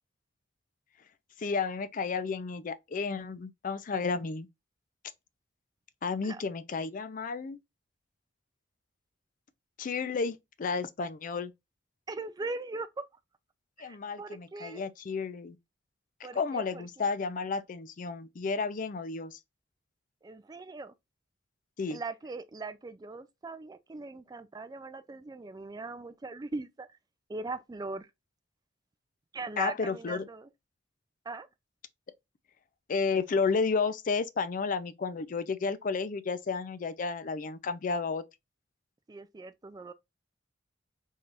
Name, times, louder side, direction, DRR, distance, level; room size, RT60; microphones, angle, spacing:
voice 1, 1.4-4.5 6.0-7.6 9.8-11.5 13.8-15.6 16.3-19.4 21.8-22.0 29.6-30.3 32.9-38.2, left 4 dB, 45° left, 0.4 m, -32 dB
voice 2, 12.1-13.1 13.8-14.9 16.2-17.1 20.2-20.9 21.9-27.0 27.3-28.1 29.3-30.5 31.3-31.5 39.1-39.9, right 3 dB, 20° right, 0.3 m, -40 dB
3.6 x 3.3 x 2.5 m
head